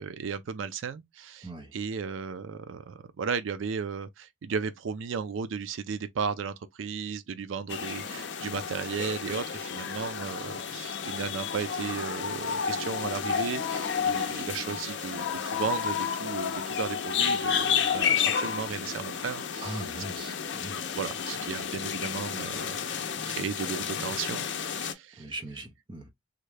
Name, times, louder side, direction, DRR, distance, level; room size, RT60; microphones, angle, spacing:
voice 1, 0.0-19.8 20.9-24.5 24.7-25.3, right 6 dB, 80° right, 0.4 m, -35 dB
voice 2, 1.4-1.7 19.6-20.8 25.2-26.1, right 1 dB, 25° right, 0.6 m, -40 dB
sound 1, 7.7-24.9, left 7 dB, 65° left, 0.5 m, -31 dB
sound 2, 12.8-15.0 16.0-19.0 20.0-20.4, equal, 15° left, 1.0 m, -48 dB
3.6 x 2.1 x 3.2 m
head